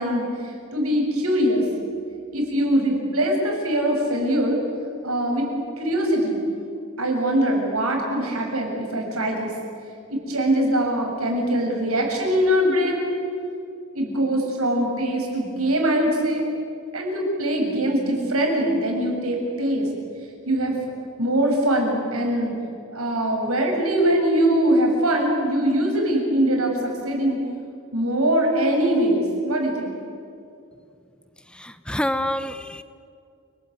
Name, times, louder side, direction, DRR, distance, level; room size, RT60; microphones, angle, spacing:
voice 1, 0.0-1.6 2.3-4.6 5.0-5.5 5.8-6.4 7.0-9.5 10.1-13.1 13.9-16.5 16.9-19.9 20.5-20.8 21.2-22.5 22.9-27.4 27.9-29.9, right 1 dB, 80° right, 1 dB, 7.5 m, -22 dB
voice 2, 31.5-32.8, left 1 dB, 5° left, 11 dB, 0.7 m, -27 dB
29.5 x 20.5 x 9.5 m, 2.5 s
head